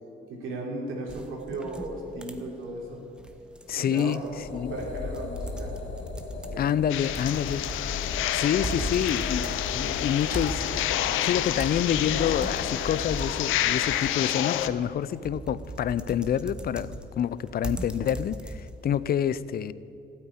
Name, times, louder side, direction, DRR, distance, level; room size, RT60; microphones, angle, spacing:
voice 1, 0.3-3.0 3.7-4.4 4.7-5.7 6.3-6.6 8.7-9.0, right 2 dB, 90° right, 3.3 m, -36 dB
sound 1, 1.1-19.0, right 1 dB, 5° right, 1.1 m, -40 dB
voice 2, 3.7-4.7 6.5-7.6 8.3-19.7, left 9 dB, 50° left, 0.5 m, -28 dB
sound 2, 4.2-13.3, left 3 dB, 65° left, 1.9 m, -37 dB
sound 3, 6.9-14.7, left 12 dB, 90° left, 0.6 m, -29 dB
13.0 x 9.0 x 10.0 m
cardioid pair, 90°, 20 cm